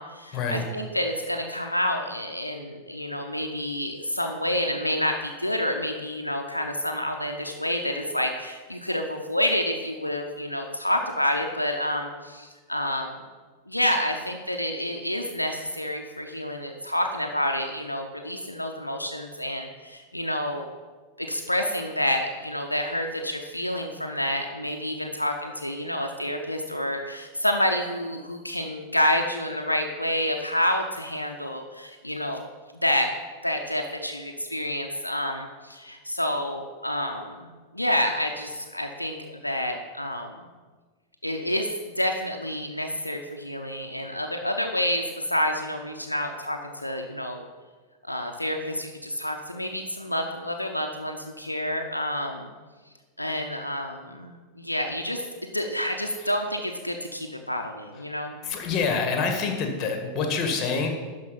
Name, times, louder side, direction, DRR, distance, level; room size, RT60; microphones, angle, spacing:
voice 1, 0.0-13.2 13.7-20.7 21.2-32.5 32.8-33.1 33.4-40.5 41.2-41.7 42.0-45.0 45.3-47.4 48.1-52.5 53.2-55.2 55.5-58.4, left 1 dB, 85° left, 3 dB, 0.7 m, -28 dB
voice 2, 58.4-60.9, left 4 dB, 30° left, 4 dB, 1.9 m, -26 dB
12.0 x 4.8 x 5.7 m, 1.4 s
figure-of-eight pair, 90°, 0 cm